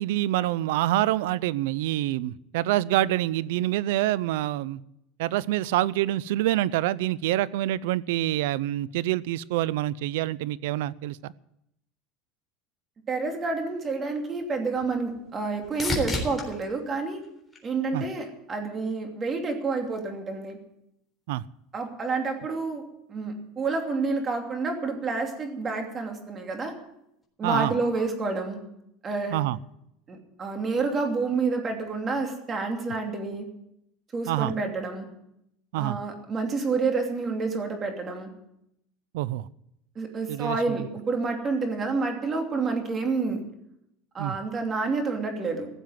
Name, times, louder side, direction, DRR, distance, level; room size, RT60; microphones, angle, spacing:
voice 1, 0.0-4.8 5.2-11.3 17.9-18.0 21.3-21.4 27.4-27.7 29.3-29.6 34.3-34.5 35.7-36.0 39.1-39.5 40.3-40.8 44.2-44.4, right 15 dB, 80° right, 21 dB, 0.5 m, -26 dB
voice 2, 13.1-17.2 17.6-20.6 21.7-26.7 27.4-28.6 29.0-29.4 30.1-33.5 34.1-35.1 35.8-38.3 39.9-43.4 44.1-45.7, right 4 dB, 25° right, 4 dB, 2.9 m, -29 dB
sound 1, 14.0-18.3 18.8-19.4 27.2-27.3, left 2 dB, 10° left, 3.8 m, -36 dB
15.5 x 7.4 x 9.4 m, 0.80 s
supercardioid pair, 125°, 0 cm